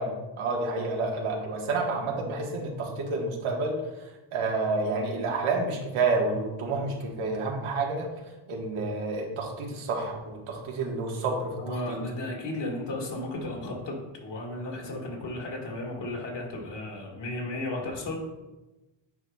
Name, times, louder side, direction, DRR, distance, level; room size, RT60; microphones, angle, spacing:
voice 1, 0.0-3.8 4.3-8.1 8.5-11.5 11.9-12.0, right 3 dB, 80° right, 0 dB, 1.4 m, -29 dB
voice 2, 11.6-18.2, left 1 dB, 60° left, -1 dB, 1.9 m, -34 dB
9.6 x 4.6 x 2.2 m, 1.1 s
cardioid pair, 95°, 48 cm